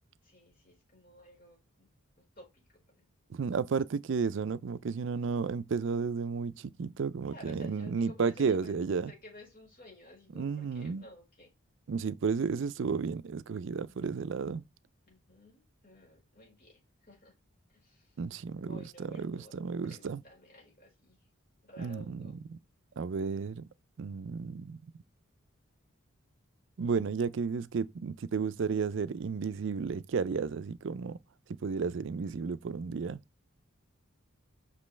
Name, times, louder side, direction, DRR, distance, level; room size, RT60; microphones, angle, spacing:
voice 1, 0.2-1.9 2.2-3.0 7.3-8.8 9.0-11.5 15.0-17.3 17.7-18.1 18.5-19.6 19.8-21.2 21.6-22.4, left 1 dB, 40° left, 4.4 m, -54 dB
voice 2, 3.3-9.1 10.3-11.0 11.9-14.6 18.2-20.2 21.8-22.6 23.0-23.7 24.0-24.8 26.8-31.2 31.6-33.2, right 5 dB, 60° right, 0.4 m, -33 dB
6.1 x 5.2 x 3.2 m
head